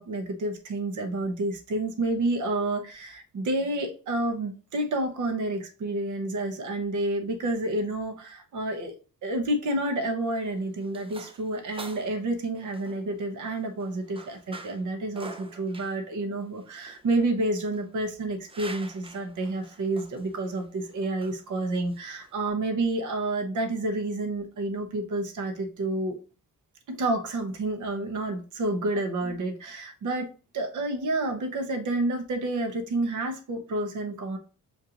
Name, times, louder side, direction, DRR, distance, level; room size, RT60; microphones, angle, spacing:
voice 1, 0.0-8.9 9.2-26.2 26.9-34.4, right 2 dB, 65° right, 5 dB, 1.0 m, -29 dB
sound 1, 10.2-22.5, right 3 dB, 15° right, 0.5 m, -47 dB
6.3 x 2.6 x 2.8 m, 0.35 s
cardioid pair, 110°, 33 cm